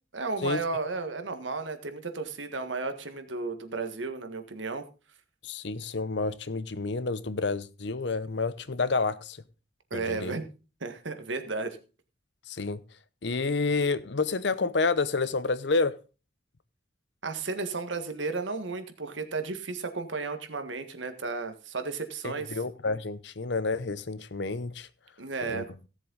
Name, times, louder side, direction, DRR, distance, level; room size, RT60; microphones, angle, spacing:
voice 1, 0.1-4.9 9.9-10.5 10.8-11.8 17.2-22.6 25.2-25.7, right 3 dB, 75° right, 1.6 m, -33 dB
voice 2, 5.4-9.4 9.9-10.4 12.5-12.8 13.2-16.0 22.2-24.9 25.4-25.6, left 3 dB, 65° left, 0.8 m, -29 dB
17.0 x 7.6 x 4.0 m
head